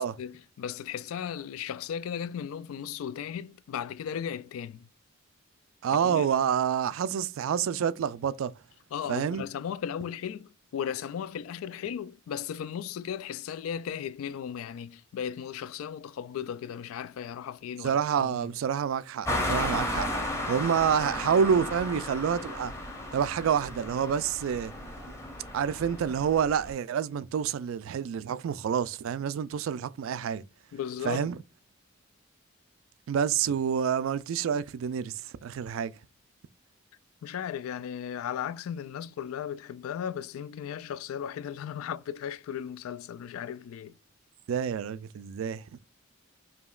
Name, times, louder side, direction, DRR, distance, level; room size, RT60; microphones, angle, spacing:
voice 1, 0.0-4.9 6.0-6.3 8.9-18.5 30.7-31.3 37.2-43.9, left 8 dB, 85° left, 0.3 m, -36 dB
voice 2, 5.8-8.5 9.1-9.4 17.8-20.1 20.5-22.7 23.1-24.7 25.5-30.4 31.0-31.4 33.1-35.1 35.4-35.9 44.5-45.6, right 7 dB, 75° right, 0.3 m, -28 dB
sound 1, 19.2-26.7, left 1 dB, 15° left, 0.8 m, -34 dB
5.0 x 2.8 x 2.3 m
head